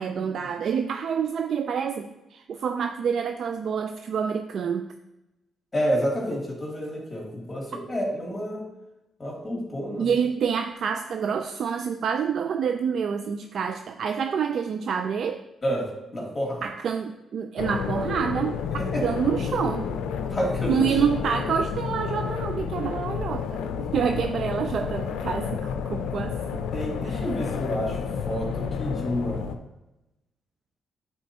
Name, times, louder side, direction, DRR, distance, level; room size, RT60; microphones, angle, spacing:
voice 1, 0.0-4.9 10.0-15.4 16.6-18.6 19.0-19.9 20.7-26.6 27.0-27.2, right 7 dB, 65° right, 6 dB, 0.4 m, -27 dB
voice 2, 5.7-8.7 9.2-10.2 15.6-16.6 18.7-19.0 20.3-21.0 26.7-29.4, equal, 25° left, -3 dB, 2.5 m, -29 dB
sound 1, 17.6-29.6, left 7 dB, 90° left, 0.5 m, -30 dB
9.6 x 4.4 x 2.9 m, 0.95 s
cardioid pair, 70°, 0 cm